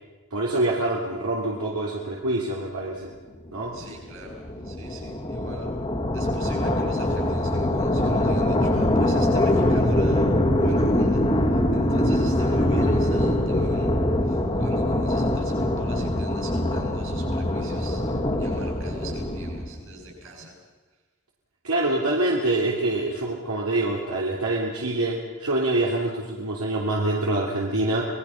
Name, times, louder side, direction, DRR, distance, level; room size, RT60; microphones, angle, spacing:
voice 1, 0.3-3.1 3.5-3.8 21.6-28.0, right 2 dB, 90° right, -4 dB, 3.3 m, -25 dB
sound 1, 3.6-19.9, left 1 dB, 25° left, 1.7 m, -23 dB
voice 2, 3.7-5.7 6.1-13.9 14.2-20.5, right 1 dB, 65° right, 1 dB, 7.5 m, -42 dB
26.5 x 20.0 x 5.9 m, 1.3 s
head